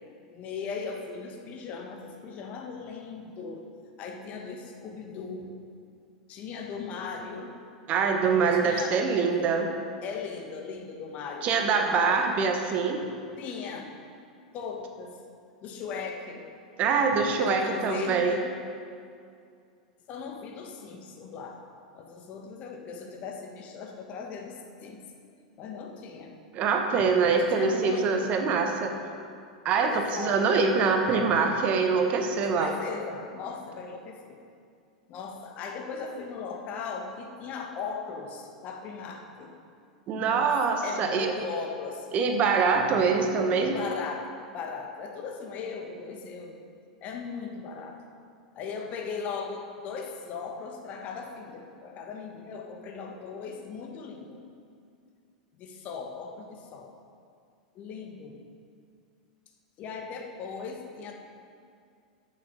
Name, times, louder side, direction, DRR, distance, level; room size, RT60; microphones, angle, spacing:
voice 1, 0.3-3.7 4.0-5.6 6.3-7.6 8.5-9.0 10.0-12.3 13.4-13.9 14.5-15.2 15.6-16.5 17.4-18.5 20.1-21.6 21.9-25.0 25.6-26.4 27.3-28.3 29.8-30.4 32.4-34.4 35.1-39.6 40.1-40.5 40.8-42.1 43.7-46.6 47.0-48.0 48.5-54.4 55.6-56.9 57.7-58.4 59.8-61.1, left 5 dB, 35° left, 2 dB, 1.3 m, -38 dB
voice 2, 7.9-9.7 11.4-13.0 16.8-18.4 26.5-28.9 29.6-32.7 40.1-41.3 42.1-43.8, right 5 dB, 35° right, 4 dB, 1.1 m, -24 dB
12.5 x 6.7 x 5.4 m, 2.3 s
figure-of-eight pair, 90°, 4 cm